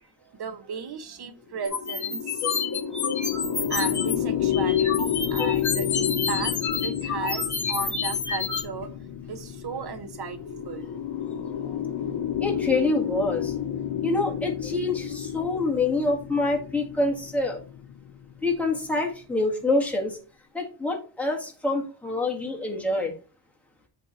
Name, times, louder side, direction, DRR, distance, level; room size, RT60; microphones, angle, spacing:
voice 1, 0.0-10.9 11.2-11.3 11.6-11.7 14.0-14.5 15.5-15.7, right 6 dB, 55° right, 9 dB, 1.1 m, -36 dB
sound 1, 1.5-19.0, left 9 dB, 65° left, 0.7 m, -30 dB
sound 2, 1.7-4.2 4.5-8.6, left 6 dB, 40° left, 1.3 m, -29 dB
voice 2, 12.4-13.5 14.0-17.6 18.4-20.2 20.5-23.1, left 2 dB, 5° left, -1 dB, 1.6 m, -26 dB
8.1 x 3.3 x 4.2 m, 0.36 s
wide cardioid pair, 130°, 47 cm